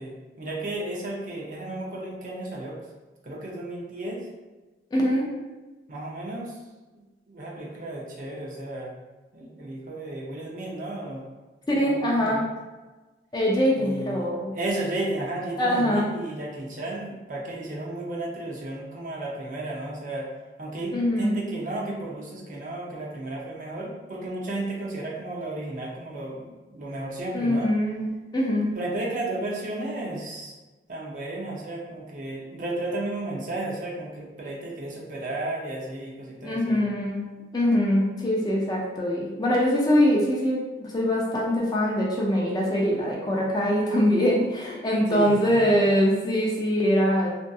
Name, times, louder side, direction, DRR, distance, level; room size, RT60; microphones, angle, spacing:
voice 1, 0.0-2.8 3.2-4.2 5.9-6.5 6.9-8.9 9.3-11.2 11.7-12.5 13.8-20.3 20.6-27.7 28.8-30.5 30.9-36.9 45.1-45.4 45.6-45.7, right 2 dB, 45° right, -3 dB, 0.5 m, -33 dB
voice 2, 4.9-5.3 11.7-12.4 13.3-14.5 15.6-16.1 20.9-21.5 27.3-28.7 36.4-37.3 37.5-47.3, equal, 25° left, -3 dB, 0.3 m, -23 dB
2.6 x 2.5 x 2.3 m, 1.2 s
head